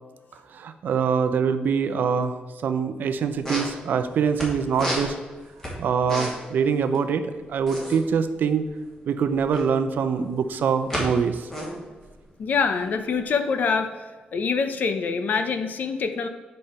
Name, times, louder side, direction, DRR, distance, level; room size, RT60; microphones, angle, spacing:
voice 1, 0.5-5.1 5.8-8.7 9.1-11.5, right 6 dB, 75° right, 10 dB, 0.6 m, -24 dB
sound 1, 3.0-3.1 3.3-4.5 4.7-6.6 6.8-7.0 7.2-9.7 10.3-11.0 11.3-13.2, equal, 15° left, 2.5 m, -32 dB
voice 2, 12.4-14.0 14.3-16.3, left 5 dB, 60° left, 8 dB, 0.7 m, -25 dB
9.4 x 5.4 x 4.4 m, 1.3 s
wide cardioid pair, 130°, 3 cm